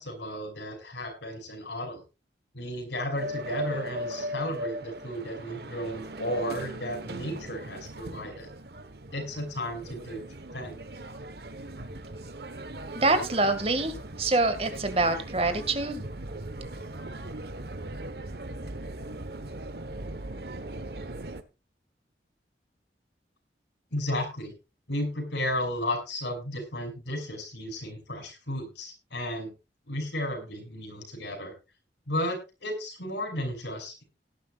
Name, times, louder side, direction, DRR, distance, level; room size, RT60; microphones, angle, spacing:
voice 1, 0.0-2.0 2.5-8.5 9.1-10.2 10.5-10.8 23.9-24.5 24.9-29.5 29.9-31.5 32.1-34.0, left 1 dB, 85° left, 4 dB, 6.1 m, -33 dB
sound 1, 3.2-21.4, right 1 dB, 65° right, 1.3 m, -39 dB
voice 2, 12.9-16.0, right 2 dB, 35° right, 9 dB, 2.0 m, -26 dB
18.0 x 11.0 x 2.5 m, 0.28 s
head